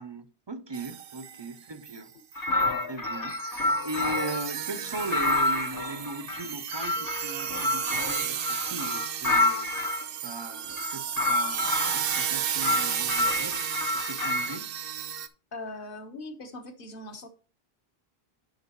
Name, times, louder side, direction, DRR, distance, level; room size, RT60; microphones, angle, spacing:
voice 1, 0.0-2.1 2.4-2.6 2.9-9.8 10.2-13.6 13.9-14.7, right 2 dB, 35° right, 0.5 m, -38 dB
sound 1, 0.7-1.6 1.8-2.0 2.3-2.7 3.0-15.3, right 9 dB, 70° right, 0.8 m, -33 dB
sound 2, 2.4-4.5 4.9-10.0 10.7-12.3 12.6-14.6, left 2 dB, 30° left, 0.4 m, -28 dB
voice 2, 15.5-17.3, left 2 dB, 60° left, 1.3 m, -40 dB
10.0 x 5.7 x 3.0 m
omnidirectional pair, 1.0 m